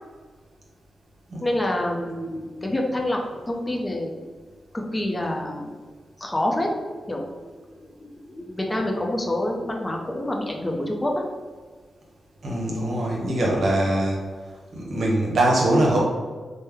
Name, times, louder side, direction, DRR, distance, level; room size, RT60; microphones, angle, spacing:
voice 1, 1.4-3.2 3.5-4.3 4.7-5.7 6.2-6.8 7.1-7.3 7.5-11.2, left 1 dB, 25° left, 1 dB, 0.6 m, -27 dB
voice 2, 12.4-14.2 14.7-16.0, right 1 dB, 75° right, -3 dB, 0.8 m, -22 dB
3.1 x 2.1 x 3.4 m, 1.5 s
cardioid pair, 60°, 0 cm